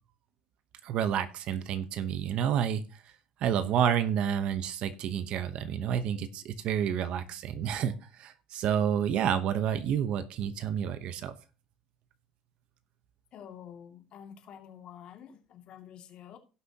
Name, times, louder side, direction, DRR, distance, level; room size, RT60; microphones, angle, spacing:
voice 1, 0.8-2.8 3.4-11.3, right 9 dB, 55° right, 1.0 m, -29 dB
voice 2, 13.3-16.4, left 9 dB, 50° left, 2.4 m, -48 dB
17.0 x 6.2 x 2.9 m
cardioid pair, 130°, 2 cm